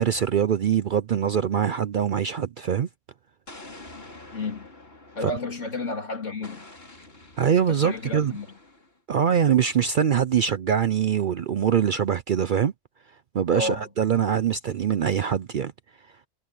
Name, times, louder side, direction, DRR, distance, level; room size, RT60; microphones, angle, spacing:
voice 1, 0.0-2.9 5.2-5.3 7.4-8.3 9.1-12.7 13.3-15.7, right 8 dB, 60° right, 0.5 m, -23 dB
Explosion, 3.5-5.9 6.4-9.0, left 2 dB, 45° left, 4.3 m, -47 dB
voice 2, 4.3-4.7 5.2-6.7 7.7-8.5 13.5-13.9, left 2 dB, 65° left, 3.5 m, -31 dB
omnidirectional pair, 1.4 m